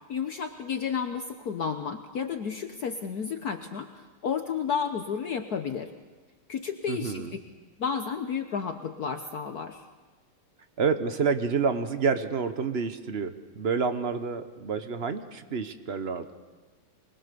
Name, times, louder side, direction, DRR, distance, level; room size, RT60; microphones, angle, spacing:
voice 1, 0.1-5.9 6.5-7.3 7.8-9.8, left 6 dB, 55° left, 7 dB, 1.2 m, -32 dB
voice 2, 6.9-7.3 10.8-16.3, right 5 dB, 45° right, 10 dB, 0.9 m, -28 dB
24.5 x 21.0 x 6.9 m, 1.3 s
omnidirectional pair, 2.3 m